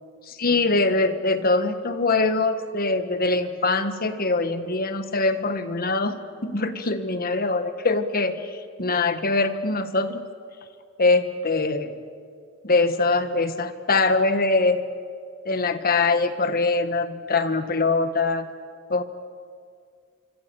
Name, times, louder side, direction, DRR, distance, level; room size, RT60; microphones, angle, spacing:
voice 1, 0.4-10.3 11.0-12.0 12.6-14.8 15.4-18.5 18.9-19.0, left 3 dB, 45° left, 9 dB, 1.4 m, -23 dB
26.0 x 25.5 x 7.0 m, 2.2 s
head